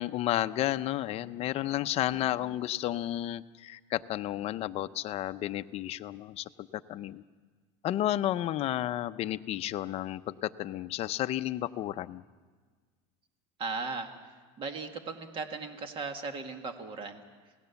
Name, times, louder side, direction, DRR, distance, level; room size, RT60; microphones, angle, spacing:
voice 1, 0.0-7.2 7.8-12.2, left 13 dB, 40° left, 11 dB, 0.6 m, -32 dB
voice 2, 13.6-17.2, right 4 dB, 35° right, 6 dB, 2.0 m, -37 dB
27.5 x 18.0 x 7.1 m, 1.5 s
supercardioid pair, 140°, 16 cm